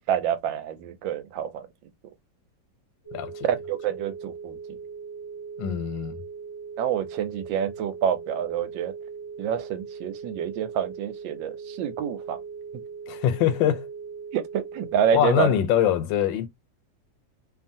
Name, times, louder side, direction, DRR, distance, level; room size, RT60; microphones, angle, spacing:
voice 1, 0.0-1.7 3.4-4.8 6.8-8.9 9.4-12.4 14.3-15.5, right 9 dB, 85° right, 1.3 m, -27 dB
sound 1, 3.0-15.2, right 5 dB, 50° left, 1.1 m, -39 dB
voice 2, 3.1-3.4 5.6-6.2 13.1-13.9 15.1-16.5, left 10 dB, 90° left, 1.4 m, -23 dB
2.8 x 2.6 x 2.6 m
omnidirectional pair, 2.0 m